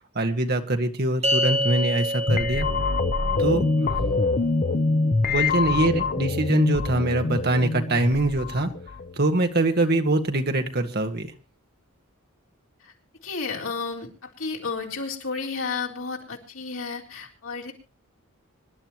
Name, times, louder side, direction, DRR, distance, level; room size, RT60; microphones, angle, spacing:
voice 1, 0.2-2.7 3.4-3.7 5.3-8.7 9.2-11.3, right 2 dB, 45° right, 6 dB, 1.7 m, -23 dB
sound 1, 1.2-7.8, equal, 30° right, 3.9 m, -31 dB
sound 2, 2.3-9.2, left 3 dB, 40° left, 0.7 m, -25 dB
voice 2, 13.2-17.7, left 4 dB, 65° left, 0 dB, 4.0 m, -32 dB
25.5 x 11.5 x 3.0 m, 0.31 s
head